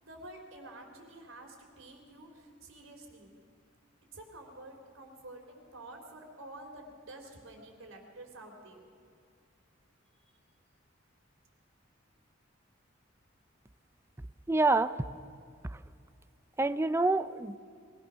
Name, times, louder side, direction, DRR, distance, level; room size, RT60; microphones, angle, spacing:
voice 1, 0.0-3.3 4.1-8.9, right 1 dB, 85° right, 3 dB, 3.5 m, -49 dB
voice 2, 14.5-15.0 15.7-15.8 16.6-17.6, right 2 dB, 15° right, 13 dB, 0.5 m, -27 dB
23.0 x 18.0 x 6.3 m, 2.4 s
head